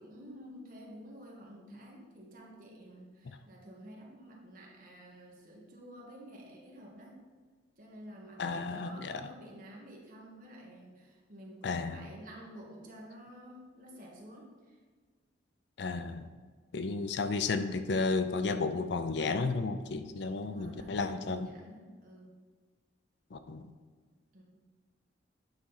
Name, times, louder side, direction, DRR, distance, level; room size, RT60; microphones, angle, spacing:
voice 1, 0.0-7.1 7.8-14.8 17.0-17.4 20.4-22.4 24.3-24.4, equal, 45° right, -2 dB, 1.3 m, -51 dB
voice 2, 8.4-9.2 11.6-12.0 15.8-16.3 16.7-21.5 23.3-23.7, left 4 dB, 60° left, 10 dB, 0.4 m, -33 dB
8.7 x 4.1 x 4.0 m, 1.5 s
head